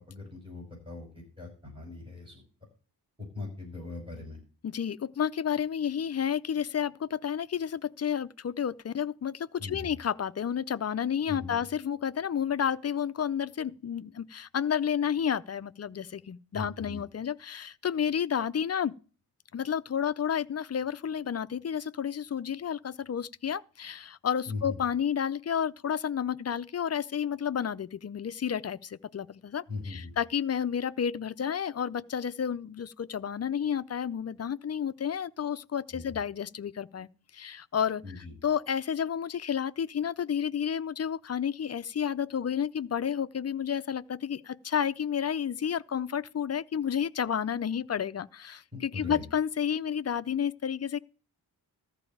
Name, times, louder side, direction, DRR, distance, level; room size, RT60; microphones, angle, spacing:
voice 1, 0.0-2.4 3.2-4.4 9.6-9.9 11.3-11.6 16.5-17.0 24.5-24.8 29.7-30.1 35.9-36.0 38.0-38.3 48.7-49.2, left 3 dB, 15° right, 5.7 m, -40 dB
voice 2, 4.6-18.9 19.5-37.1 37.3-51.0, left 8 dB, 40° left, 0.5 m, -31 dB
14.0 x 4.8 x 8.5 m
wide cardioid pair, 135°, 39 cm